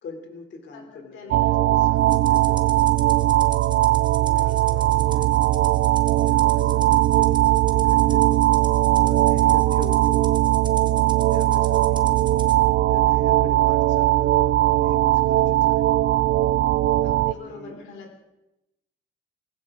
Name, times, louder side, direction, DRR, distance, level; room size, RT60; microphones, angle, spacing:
voice 1, 0.0-3.3 4.2-5.3 6.1-8.3 9.0-10.3 11.3-12.2 12.9-15.9 17.3-17.8, left 4 dB, 65° left, 5 dB, 3.0 m, -43 dB
voice 2, 1.1-2.0 4.3-4.9 5.1-5.3 17.0-18.2, left 4 dB, 85° left, 1 dB, 4.2 m, -44 dB
sound 1, 1.3-17.3, right 15 dB, 70° right, 0.5 m, -19 dB
Rattle (instrument), 2.1-12.6, right 3 dB, 25° right, 1.6 m, -42 dB
19.0 x 16.0 x 3.7 m, 0.92 s
cardioid pair, 90°, 20 cm